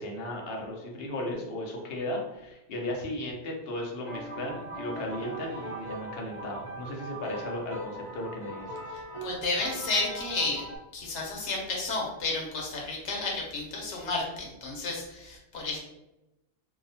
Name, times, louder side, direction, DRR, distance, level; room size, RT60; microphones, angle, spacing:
voice 1, 0.0-8.9, left 1 dB, 65° left, 0 dB, 0.8 m, -36 dB
sound 1, 4.0-10.8, right 1 dB, 30° right, 0.7 m, -40 dB
voice 2, 8.9-10.6 10.9-15.8, left 3 dB, 90° left, -1 dB, 1.0 m, -32 dB
2.7 x 2.0 x 2.7 m, 0.94 s
omnidirectional pair, 1.2 m